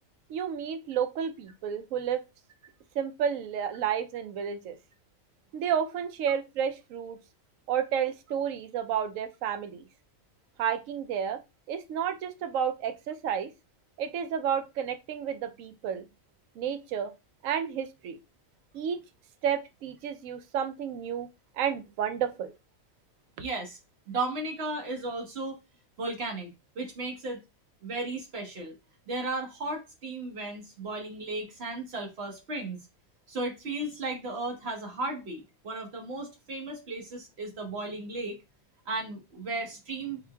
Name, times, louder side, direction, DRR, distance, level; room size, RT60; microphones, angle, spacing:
voice 1, 0.3-2.2 2.9-4.8 5.5-7.2 7.7-9.8 10.6-11.4 11.7-13.5 14.0-16.1 16.6-17.1 17.4-18.2 18.7-19.0 19.4-21.3 21.6-22.5, right 8 dB, 75° right, 1.0 m, -31 dB
voice 2, 23.4-23.8 24.1-25.6 26.0-27.4 27.8-28.7 29.1-32.8 33.3-38.4 38.9-40.2, right 2 dB, 55° right, 1.2 m, -35 dB
3.8 x 3.1 x 2.3 m
omnidirectional pair, 1.4 m